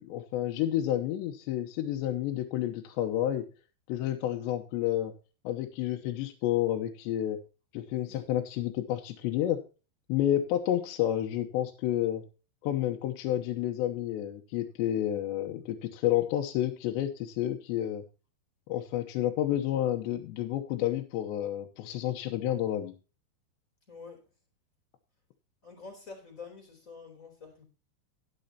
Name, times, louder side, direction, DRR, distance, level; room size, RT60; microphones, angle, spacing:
voice 1, 0.0-3.4 3.9-5.1 5.4-7.4 7.7-9.6 10.1-12.2 12.6-18.0 18.7-22.9, left 12 dB, 75° left, 4 dB, 3.1 m, -30 dB
voice 2, 23.9-24.2 25.6-27.6, left 4 dB, 20° left, 3 dB, 2.9 m, -47 dB
12.0 x 10.5 x 2.9 m, 0.33 s
omnidirectional pair, 5.4 m